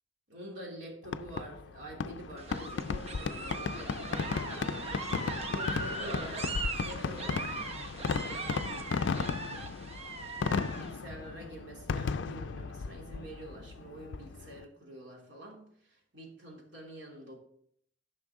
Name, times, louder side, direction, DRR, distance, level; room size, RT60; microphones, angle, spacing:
voice 1, 0.3-4.9 5.5-7.6 7.9-8.9 10.7-17.3, right 1 dB, 65° right, -1 dB, 3.1 m, -47 dB
Fireworks, 1.0-14.6, left 5 dB, 70° left, 0.4 m, -35 dB
sound 1, 2.4-11.0, right 3 dB, 35° right, 0.8 m, -40 dB
13.0 x 5.9 x 3.6 m, 0.66 s
head